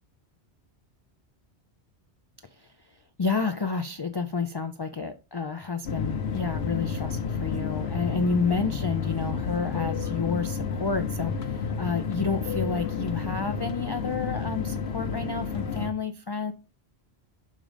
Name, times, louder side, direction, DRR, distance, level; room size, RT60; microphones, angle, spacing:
voice 1, 2.5-16.5, left 4 dB, 40° left, 0.3 m, -30 dB
sound 1, 5.8-15.9, left 6 dB, 65° left, 1.1 m, -31 dB
6.6 x 3.7 x 5.0 m
omnidirectional pair, 1.1 m